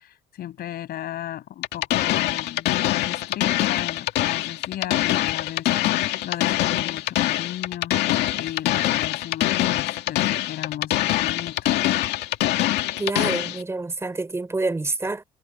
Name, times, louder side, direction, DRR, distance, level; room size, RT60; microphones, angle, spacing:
voice 1, 0.0-2.7 3.0-5.7 6.2-11.9, left 12 dB, 65° left, 6.6 m, -36 dB
sound 1, 1.6-13.6, left 15 dB, 80° left, 2.1 m, -24 dB
voice 2, 13.0-15.2, right 3 dB, 15° right, 3.8 m, -27 dB
cardioid pair, 110°, 17 cm